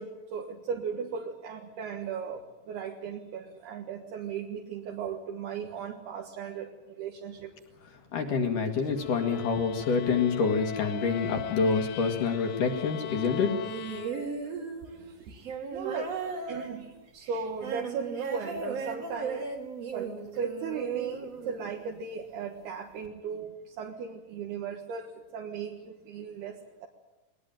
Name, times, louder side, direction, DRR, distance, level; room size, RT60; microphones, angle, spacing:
voice 1, 0.0-2.4 2.7-6.7 7.0-7.5 15.0-15.4 15.7-16.1 16.5-16.9 17.1-19.4 19.9-26.9, right 6 dB, 70° right, 1 dB, 3.4 m, -37 dB
voice 2, 8.1-14.0, left 5 dB, 55° left, 4 dB, 3.2 m, -27 dB
sound 1, 8.9-14.6, left 13 dB, 75° left, 1.8 m, -40 dB
sound 2, 13.6-22.0 23.0-23.1, right 5 dB, 45° right, 3.0 m, -36 dB
21.0 x 20.0 x 9.1 m, 1.0 s
omnidirectional pair, 4.9 m